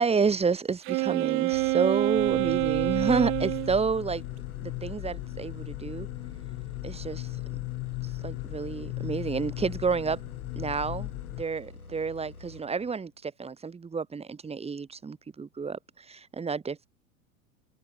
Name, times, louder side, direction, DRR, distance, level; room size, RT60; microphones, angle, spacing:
voice 1, 0.0-4.2 4.6-6.1 6.8-7.4 8.0-10.2 10.6-11.1 11.4-16.9, right 5 dB, 15° right, 2.6 m, -30 dB
Wind instrument woodwind instrument, 0.8-3.7, right 25 dB, 30° right, 0.6 m, -27 dB
sound 1, 1.5-13.2, left 3 dB, 85° left, 7.9 m, -48 dB
sound 2, 2.1-11.4, left 23 dB, 40° left, 1.8 m, -37 dB
figure-of-eight pair, 85°, 42 cm